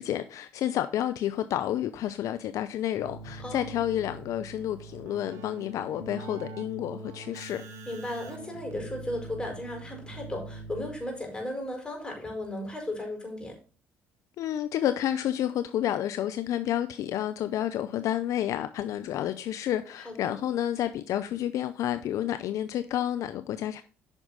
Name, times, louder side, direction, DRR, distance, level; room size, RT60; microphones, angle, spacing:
voice 1, 0.0-7.6 14.4-23.8, left 11 dB, 60° left, 0.6 m, -30 dB
Keyboard (musical), 2.9-11.3, right 2 dB, 55° right, 1.6 m, -43 dB
voice 2, 3.4-3.8 7.8-13.6 20.0-20.4, left 1 dB, 15° left, 4.8 m, -35 dB
8.9 x 6.1 x 3.9 m
hypercardioid pair, 60°, 6 cm